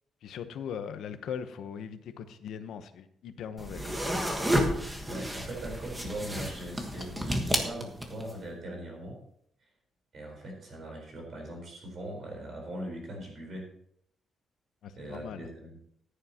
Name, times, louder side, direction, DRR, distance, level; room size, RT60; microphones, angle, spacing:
voice 1, 0.2-4.0 14.8-15.4, left 7 dB, 75° left, 10 dB, 0.9 m, -40 dB
sound 1, 3.6-8.4, equal, 10° right, 1.3 m, -31 dB
voice 2, 5.1-7.3 7.6-9.2 10.1-13.7 15.0-15.8, right 1 dB, 40° right, 0 dB, 4.1 m, -40 dB
14.5 x 10.0 x 2.9 m, 0.69 s
wide cardioid pair, 180°, 0 cm